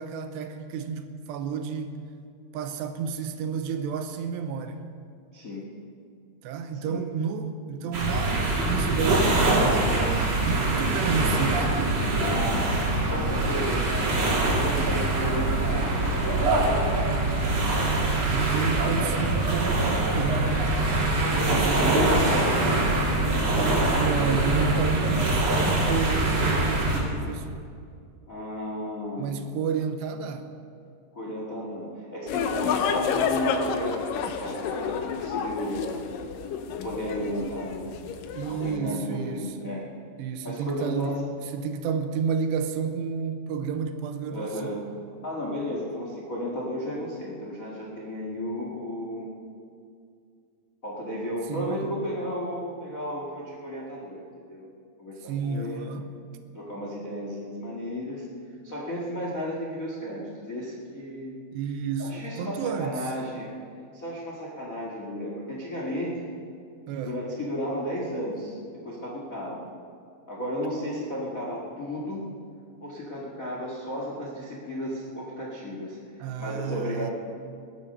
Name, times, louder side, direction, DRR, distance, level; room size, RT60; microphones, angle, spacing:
voice 1, 0.0-2.0 2.5-4.8 6.4-12.0 18.3-20.9 21.3-22.2 24.0-27.7 29.2-30.5 38.4-39.5 40.2-41.3 41.5-44.8 51.5-51.9 55.2-56.1 61.5-63.0 66.9-67.2 76.2-77.1, right 6 dB, 90° right, 7 dB, 3.1 m, -31 dB
voice 2, 5.3-5.7 6.7-7.0 12.0-16.5 21.0-23.5 24.0-24.4 28.3-29.4 31.1-35.9 36.8-38.0 38.5-39.9 40.4-41.2 44.3-44.8 45.2-49.3 50.8-54.7 55.0-55.8 56.5-58.2 58.6-61.4 62.0-63.5 63.9-66.2 67.0-69.6 70.3-72.3 72.8-76.0 76.4-77.1, equal, 50° left, -3 dB, 0.9 m, -33 dB
sound 1, 7.9-27.0, right 2 dB, 40° right, 3.5 m, -24 dB
sound 2, 32.3-38.8, left 6 dB, 75° left, 2.1 m, -30 dB
20.5 x 10.0 x 5.5 m, 2.3 s
omnidirectional pair, 4.8 m